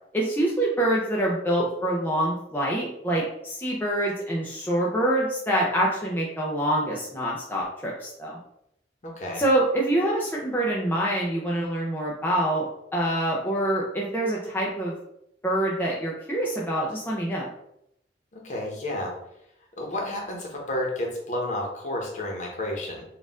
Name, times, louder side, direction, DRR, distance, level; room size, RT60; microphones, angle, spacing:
voice 1, 0.1-8.4 9.4-12.6 12.9-15.0 15.4-17.5, right 1 dB, 10° left, -4 dB, 0.5 m, -25 dB
voice 2, 9.0-9.4 18.3-19.1 19.8-23.0, left 1 dB, 40° left, -1 dB, 1.0 m, -31 dB
4.1 x 2.5 x 3.6 m, 0.79 s
head